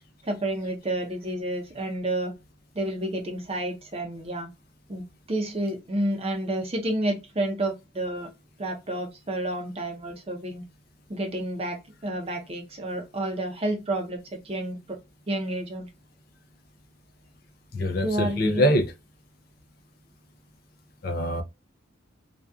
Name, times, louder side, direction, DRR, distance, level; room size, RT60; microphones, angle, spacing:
voice 1, 0.2-2.3 2.7-4.5 4.9-8.3 8.6-10.6 11.1-15.0 15.3-15.9 18.0-18.8, right 1 dB, 30° right, 0.6 m, -30 dB
voice 2, 17.7-18.9 21.0-21.4, equal, 45° left, 0.4 m, -24 dB
2.6 x 2.3 x 2.3 m
head